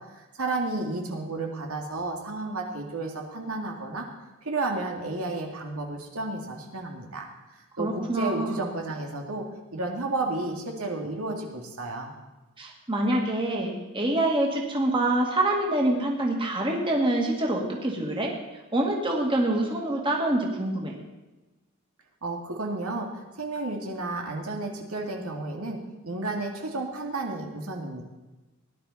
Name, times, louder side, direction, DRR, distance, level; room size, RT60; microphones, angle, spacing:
voice 1, 0.0-4.1 4.4-7.3 7.8-9.5 9.7-12.1 22.2-25.8 26.0-28.0, right 2 dB, 85° right, 1 dB, 2.3 m, -32 dB
voice 2, 7.8-8.5 12.6-18.3 18.7-20.9, right 1 dB, 25° right, 0 dB, 2.0 m, -26 dB
18.5 x 11.5 x 4.2 m, 1.1 s
head